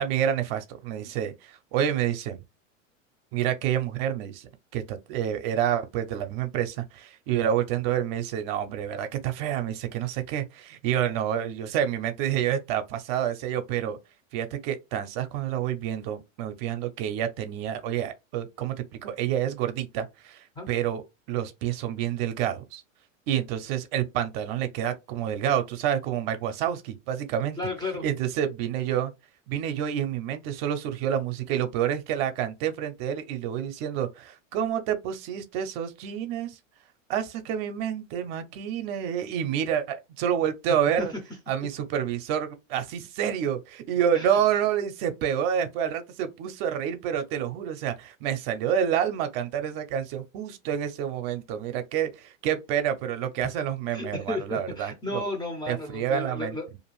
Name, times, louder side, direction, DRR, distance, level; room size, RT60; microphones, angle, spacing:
voice 1, 0.0-2.4 3.3-14.0 14.3-22.8 23.3-27.6 28.0-29.1 29.5-36.6 37.1-41.1 41.5-55.2 55.7-56.6, right 9 dB, 50° right, 0.6 m, -28 dB
voice 2, 27.6-28.0 41.0-41.1 44.1-44.3 53.9-56.8, left 2 dB, 10° left, 0.5 m, -33 dB
2.5 x 2.3 x 3.0 m
hypercardioid pair, 115°, 40 cm